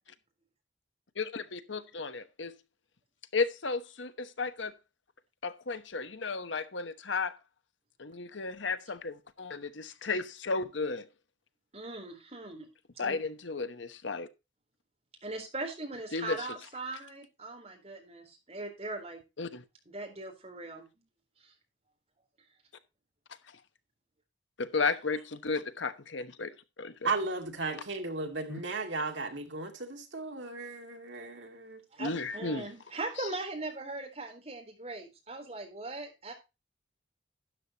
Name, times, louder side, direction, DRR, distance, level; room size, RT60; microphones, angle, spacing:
voice 1, 1.2-2.5 3.3-4.7 5.4-7.3 8.0-11.1 13.0-14.3 16.1-16.5 19.4-19.6 24.6-26.5 26.8-27.1 28.5-28.6 32.0-32.7 33.2-33.3, left 4 dB, 80° left, 1.1 m, -34 dB
voice 2, 11.7-12.7 13.0-13.2 15.2-19.2 19.9-20.9 21.4-21.5 31.9-36.3, right 2 dB, 35° right, 3.8 m, -40 dB
voice 3, 27.0-31.8, right 3 dB, 75° right, 2.4 m, -35 dB
12.5 x 9.7 x 2.9 m
head